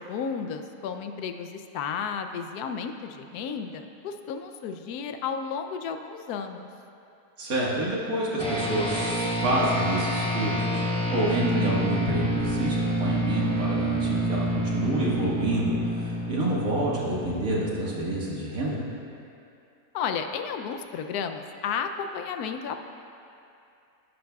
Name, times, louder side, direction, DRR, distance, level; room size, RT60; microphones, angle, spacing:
voice 1, 0.0-6.7 19.9-22.8, left 6 dB, 90° left, 7 dB, 1.1 m, -33 dB
voice 2, 7.4-10.8 11.1-18.8, right 1 dB, 70° right, -6 dB, 2.1 m, -28 dB
sound 1, 8.4-18.1, equal, 5° left, 0.7 m, -28 dB
12.0 x 11.5 x 2.3 m, 2.6 s
omnidirectional pair, 1.6 m